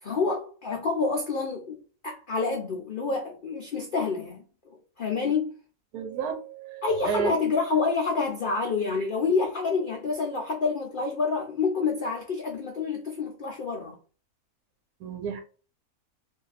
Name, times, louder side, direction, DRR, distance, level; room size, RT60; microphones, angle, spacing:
voice 1, 0.0-5.5 6.8-14.0, left 4 dB, 85° left, 0.4 m, -28 dB
voice 2, 5.9-7.3 15.0-15.4, right 7 dB, 80° right, 1.2 m, -31 dB
2.6 x 2.4 x 3.9 m
omnidirectional pair, 1.6 m